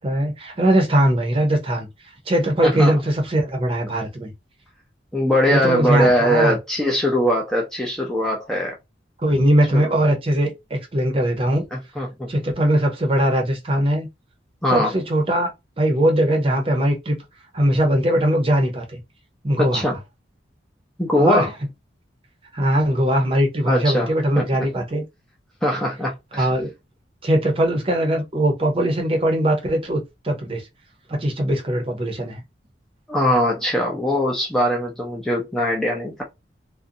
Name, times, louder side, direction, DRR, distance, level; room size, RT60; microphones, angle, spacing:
voice 1, 0.0-1.9 2.3-4.3 5.5-6.6 9.2-11.7 12.3-14.1 14.7-15.5 15.8-17.2 17.5-19.0 19.4-19.8 21.2-21.5 22.5-25.0 26.3-26.7 27.2-30.6 31.1-32.4, right 1 dB, 30° right, 0.7 m, -20 dB
voice 2, 2.6-2.9 5.1-8.7 9.7-10.0 11.7-12.3 14.6-14.9 19.6-20.0 21.0-21.5 23.7-24.5 25.6-26.5 33.1-36.2, equal, 5° left, 0.4 m, -21 dB
2.5 x 2.2 x 2.6 m
head